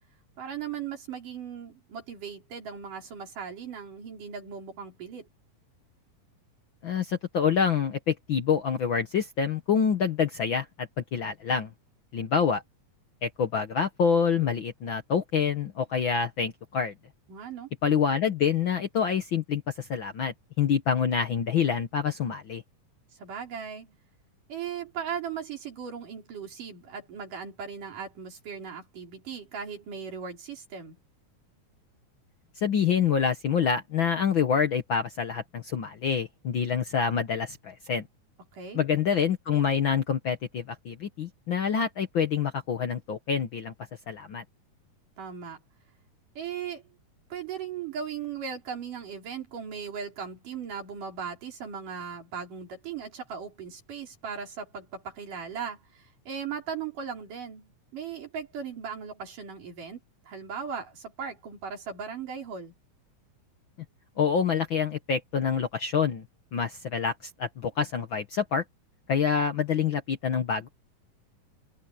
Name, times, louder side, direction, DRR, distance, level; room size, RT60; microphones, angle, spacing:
voice 1, 0.4-5.3 17.3-17.7 23.1-24.0 24.5-31.0 38.5-38.8 45.2-45.6 46.4-46.8 47.3-62.7, right 7 dB, 80° right, 5.6 m, -38 dB
voice 2, 6.8-11.7 12.1-12.6 13.2-16.9 17.8-22.6 32.6-38.0 38.7-43.7 44.1-44.4 64.2-66.2 66.5-68.6 69.1-70.7, left 7 dB, 60° left, 1.3 m, -27 dB
open air
omnidirectional pair, 3.7 m